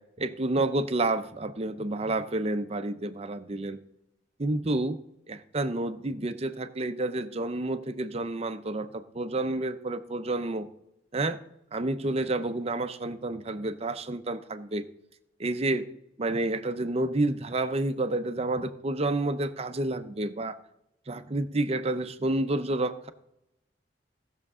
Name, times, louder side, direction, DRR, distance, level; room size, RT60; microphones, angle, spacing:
voice 1, 0.2-3.8 4.4-5.0 5.3-10.7 11.1-11.4 11.7-14.9 15.4-15.8 16.2-20.6 21.1-23.1, right 2 dB, 35° right, 11 dB, 0.6 m, -29 dB
17.5 x 6.6 x 3.7 m, 0.84 s
head